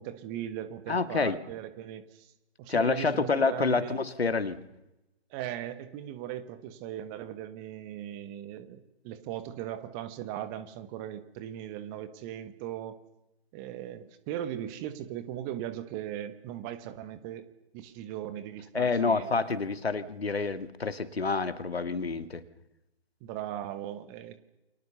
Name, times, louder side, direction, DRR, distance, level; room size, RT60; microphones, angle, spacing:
voice 1, 0.0-2.3 2.6-4.0 5.3-13.0 13.5-17.4 17.7-19.3 23.2-24.4, right 11 dB, 20° right, 12 dB, 1.4 m, -38 dB
voice 2, 0.9-1.4 2.7-4.6 18.7-22.4, left 4 dB, 70° left, 11 dB, 2.3 m, -28 dB
29.5 x 23.5 x 6.9 m, 0.95 s
figure-of-eight pair, 135°, 32 cm